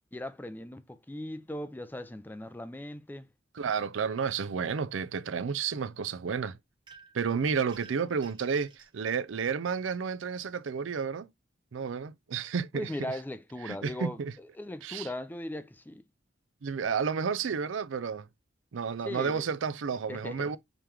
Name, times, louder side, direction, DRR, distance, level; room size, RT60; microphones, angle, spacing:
voice 1, 0.1-3.3 12.7-16.0 19.0-19.5 20.1-20.6, left 1 dB, 10° left, 0.4 m, -39 dB
voice 2, 3.5-6.6 7.1-11.3 11.7-12.9 13.6-14.3 14.8-15.1 16.6-18.3 18.7-20.6, right 6 dB, 85° right, 0.5 m, -31 dB
sound 1, 6.9-7.3 7.7-9.0, right 5 dB, 25° right, 1.0 m, -53 dB
5.3 x 3.0 x 3.3 m
head